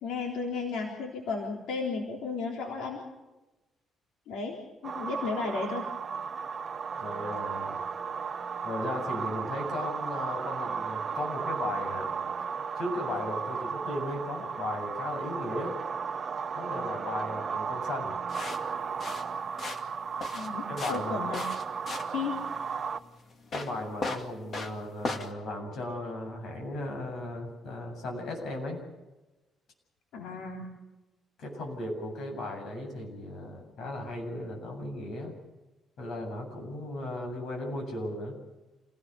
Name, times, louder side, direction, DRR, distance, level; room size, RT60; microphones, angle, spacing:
voice 1, 0.0-3.0 4.3-5.9 20.3-21.4 22.1-22.4 30.1-30.7, left 4 dB, 85° left, 0 dB, 3.8 m, -34 dB
sound 1, 4.8-23.0, right 6 dB, 30° right, 0.7 m, -35 dB
voice 2, 7.0-7.8 8.6-12.1 12.7-15.8 16.5-18.1 20.7-21.3 23.5-28.8 31.4-35.3 36.0-38.4, left 1 dB, 55° left, 3 dB, 7.9 m, -36 dB
sound 2, 18.3-25.3, left 3 dB, 35° left, 2.3 m, -38 dB
28.0 x 18.0 x 7.0 m, 1.1 s
cardioid pair, 165°, 0 cm